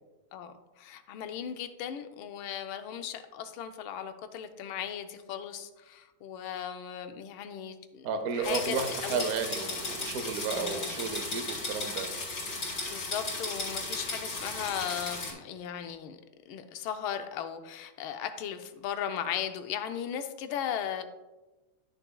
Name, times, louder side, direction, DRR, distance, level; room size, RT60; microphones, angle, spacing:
voice 1, 0.3-8.8 9.0-9.3 10.5-10.9 12.9-16.2 16.5-21.1, left 9 dB, 80° left, 8 dB, 1.5 m, -37 dB
voice 2, 8.0-12.1, right 5 dB, 65° right, 8 dB, 0.9 m, -33 dB
sound 1, 8.4-15.3, left 2 dB, 50° left, 3.1 m, -35 dB
11.0 x 6.9 x 2.2 m, 1.1 s
omnidirectional pair, 2.2 m